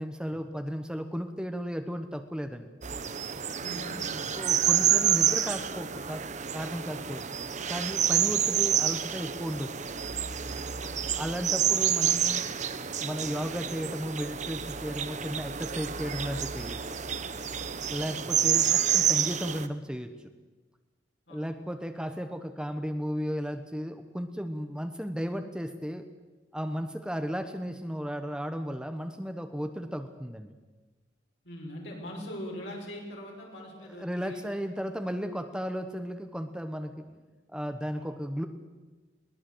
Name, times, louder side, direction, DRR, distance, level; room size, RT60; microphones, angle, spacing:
voice 1, 0.0-2.7 4.3-6.2 6.5-7.2 7.7-9.7 11.1-12.5 13.0-16.8 17.9-20.1 21.3-26.0 26.5-30.6 33.8-37.0 37.5-38.5, equal, 5° right, 7 dB, 1.0 m, -34 dB
sound 1, 2.8-19.7, right 9 dB, 40° right, 1.0 m, -28 dB
voice 2, 3.6-4.9 8.1-8.3 10.8-11.0 18.0-18.3 21.3-21.5 31.4-34.4 37.0-37.1 38.0-38.1, equal, 65° left, -2 dB, 6.1 m, -42 dB
21.5 x 19.0 x 7.9 m, 1.3 s
head